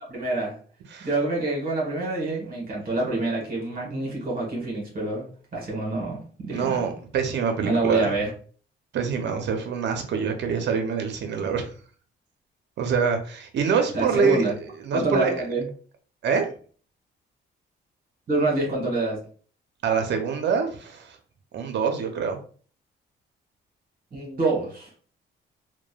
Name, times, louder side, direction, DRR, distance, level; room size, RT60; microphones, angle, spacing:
voice 1, 0.1-0.6 1.0-5.2 5.5-6.9 7.6-8.3 13.9-14.5 14.9-15.7 18.3-19.2 24.1-24.9, right 2 dB, 45° right, -3 dB, 1.3 m, -26 dB
voice 2, 6.5-8.1 8.9-11.7 12.8-14.4 14.8-15.3 16.2-16.5 19.8-21.2 21.5-22.4, right 6 dB, 60° right, 5 dB, 0.6 m, -25 dB
3.0 x 2.2 x 2.3 m, 0.43 s
cardioid pair, 90°, 20 cm